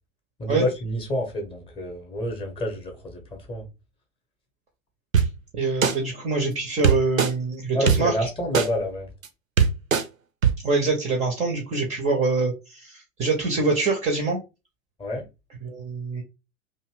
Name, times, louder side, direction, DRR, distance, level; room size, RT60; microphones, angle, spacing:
voice 1, 0.4-3.7 7.7-9.1 15.0-15.3, left 1 dB, 15° left, 0.7 m, -28 dB
sound 1, 5.1-5.3 5.8-5.9 6.8-7.3 7.9-8.0 8.5-8.7 9.2-9.3 9.6-10.0 10.4-10.5, right 7 dB, 85° right, 0.6 m, -18 dB
voice 2, 5.6-8.1 10.6-14.4 15.6-16.2, right 3 dB, 20° right, 0.5 m, -24 dB
2.6 x 2.5 x 3.1 m
figure-of-eight pair, 95°, 39 cm